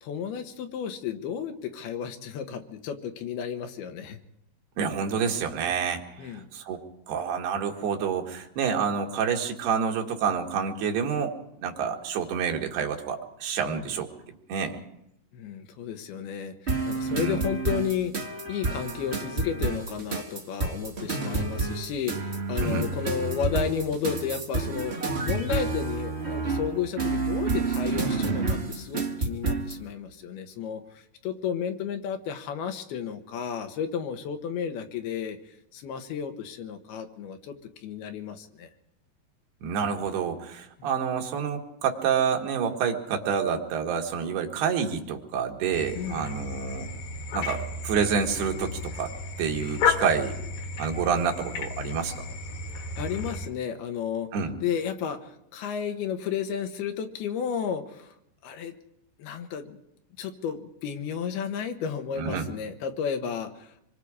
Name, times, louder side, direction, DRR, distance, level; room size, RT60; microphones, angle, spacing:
voice 1, 0.0-4.2 6.2-6.5 13.7-13.9 15.3-35.4 35.7-38.7 40.8-40.9 46.0-46.2 53.0-54.4 54.6-58.2 58.4-58.8 59.2-59.8 60.2-63.8, left 7 dB, 80° left, 6 dB, 3.3 m, -33 dB
voice 2, 4.8-6.8 7.1-11.3 11.6-14.1 14.5-14.8 17.1-17.4 22.6-22.9 39.6-46.9 47.3-49.1 49.4-50.4 50.8-52.2 54.3-54.6 62.2-62.5, right 6 dB, 80° right, 2 dB, 3.8 m, -28 dB
sound 1, 16.7-29.8, right 3 dB, 65° right, 0.6 m, -29 dB
sound 2, 45.7-53.5, left 5 dB, 60° left, 3.1 m, -32 dB
26.0 x 22.5 x 4.9 m, 0.79 s
omnidirectional pair, 4.6 m